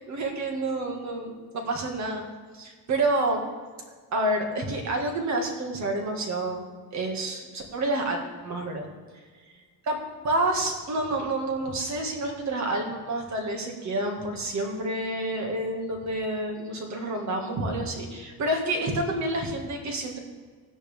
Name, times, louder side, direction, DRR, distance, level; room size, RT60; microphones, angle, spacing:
voice 1, 0.0-2.2 2.5-3.4 4.1-6.7 6.9-8.9 9.9-10.0 10.2-20.2, right 2 dB, 45° right, 2 dB, 2.0 m, -29 dB
17.0 x 9.7 x 3.6 m, 1.5 s
cardioid pair, 175°, 39 cm